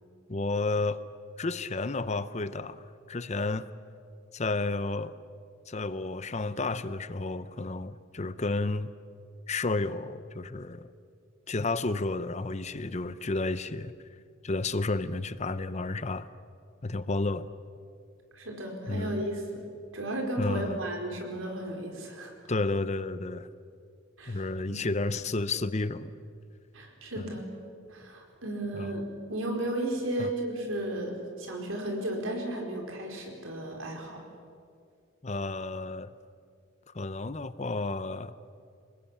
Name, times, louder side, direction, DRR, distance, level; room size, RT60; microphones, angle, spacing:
voice 1, 0.3-1.0 1.4-2.8 3.1-3.7 4.3-5.1 5.7-8.9 9.5-10.9 11.5-13.9 14.4-16.3 16.8-17.5 18.9-19.2 20.4-20.8 22.5-23.5 24.3-26.2 27.2-27.3 28.7-29.0 30.2-30.3 35.2-36.1 36.9-38.3, left 3 dB, 35° left, 14 dB, 0.7 m, -31 dB
voice 2, 18.3-19.6 19.9-22.3 24.2-24.9 26.7-27.5 27.9-29.0 29.3-34.2, right 1 dB, 85° right, 2 dB, 4.7 m, -34 dB
24.5 x 20.5 x 8.6 m, 2.3 s
head